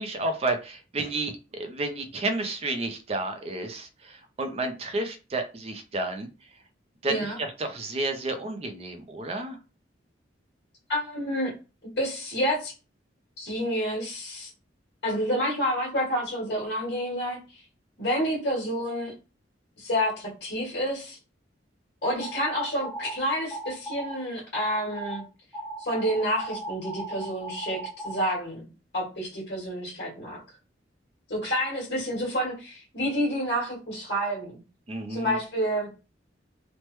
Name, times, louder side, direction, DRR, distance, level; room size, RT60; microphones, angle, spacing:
voice 1, 0.0-6.3 7.0-9.6 34.9-35.4, right 2 dB, 30° right, 6 dB, 0.4 m, -31 dB
voice 2, 7.0-7.4 10.9-11.5 12.0-12.7 13.4-14.5 15.0-17.6 18.0-19.1 19.8-21.2 22.0-25.2 25.8-28.7 28.9-30.4 31.3-34.6 35.1-35.9, equal, 60° left, -5 dB, 1.5 m, -29 dB
sound 1, 22.2-23.1 23.5-24.2 24.5-25.2 25.5-28.3, right 2 dB, 5° right, 0.8 m, -37 dB
3.1 x 2.1 x 3.0 m, 0.32 s
head